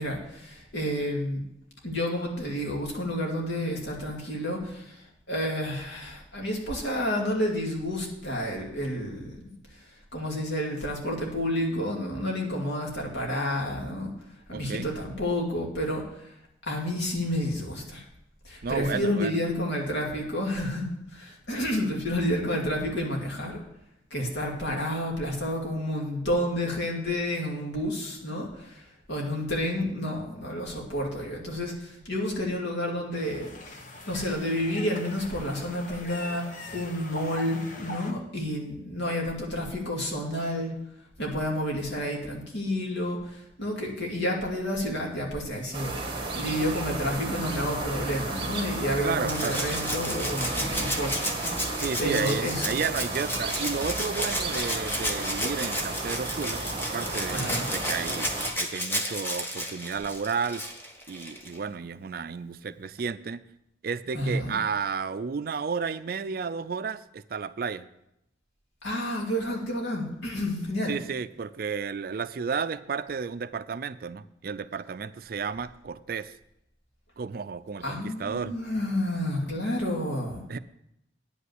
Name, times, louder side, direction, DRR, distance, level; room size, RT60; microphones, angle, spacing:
voice 1, 0.0-1.4 1.8-5.0 5.3-9.5 10.1-14.1 14.5-16.0 16.7-18.0 18.4-23.6 24.1-33.8 34.1-36.4 36.7-40.7 41.2-45.9 46.3-51.3 52.0-52.8 57.3-57.7 64.1-64.5 68.8-70.9 77.8-80.4, equal, 80° left, -1 dB, 2.5 m, -30 dB
voice 2, 14.5-14.9 18.6-19.5 49.0-49.6 51.8-58.3 58.6-60.6 61.1-63.4 63.8-67.9 70.9-76.3 77.2-78.5 80.5-80.6, right 5 dB, 55° right, 14 dB, 0.4 m, -32 dB
sound 1, 33.1-38.1, left 2 dB, 45° left, 1.1 m, -42 dB
sound 2, 45.7-58.5, right 2 dB, 30° right, 1.6 m, -33 dB
Rattle (instrument), 49.3-61.6 63.0-63.1, equal, 10° left, 1.1 m, -33 dB
9.7 x 5.5 x 8.0 m, 0.81 s
head